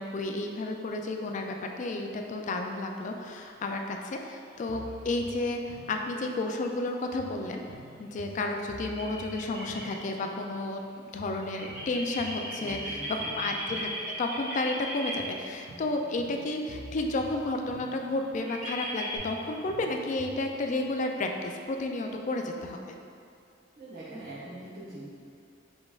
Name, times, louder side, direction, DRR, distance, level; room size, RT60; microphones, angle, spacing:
voice 1, 0.0-7.6 8.0-13.9 14.2-23.0, left 2 dB, 40° left, 3 dB, 0.3 m, -32 dB
sound 1, 4.7-6.8 7.2-10.9 11.2-14.8 15.2-18.9 19.2-20.8, right 2 dB, 80° right, 0.6 m, -49 dB
sound 2, 8.8-9.8 11.4-15.1 17.8-18.0 18.4-19.2, equal, 5° right, 1.5 m, -37 dB
voice 2, 12.6-13.5 23.7-25.1, right 1 dB, 45° right, -13 dB, 1.0 m, -43 dB
4.9 x 3.9 x 2.4 m, 2.4 s
head